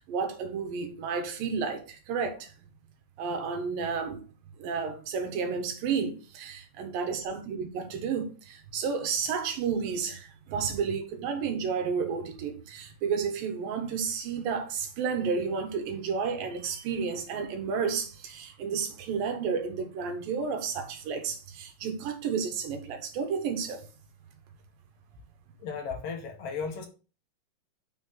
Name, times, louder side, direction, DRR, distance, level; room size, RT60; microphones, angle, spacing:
voice 1, 0.0-2.5 3.2-4.2 4.6-23.8, right 6 dB, 85° right, 3.1 m, -31 dB
voice 2, 25.6-26.9, left 5 dB, 55° left, 2.0 m, -35 dB
6.5 x 3.9 x 6.3 m
omnidirectional pair, 3.9 m